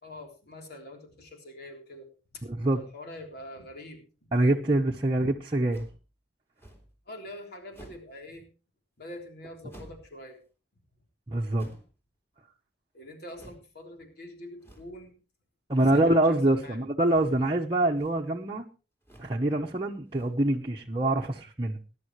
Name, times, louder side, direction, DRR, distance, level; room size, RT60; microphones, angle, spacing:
voice 1, 0.0-2.5 2.7-4.1 7.1-8.5 9.0-10.4 12.9-15.1 15.9-16.0 16.3-16.8, left 1 dB, 60° left, 2 dB, 3.6 m, -45 dB
voice 2, 2.4-2.8 4.3-5.9 11.3-11.7 15.7-18.6 19.2-21.8, right 1 dB, 25° right, -2 dB, 1.0 m, -25 dB
sound 1, 5.7-6.0 6.6-7.0 7.7-8.2 9.7-10.1 11.5-12.0 13.3-13.7 14.6-15.0 15.8-16.2 17.0-17.5 17.8-18.3 19.0-19.4 20.0-20.5, right 1 dB, 15° left, 3.5 m, -51 dB
20.5 x 11.0 x 3.2 m, 0.33 s
head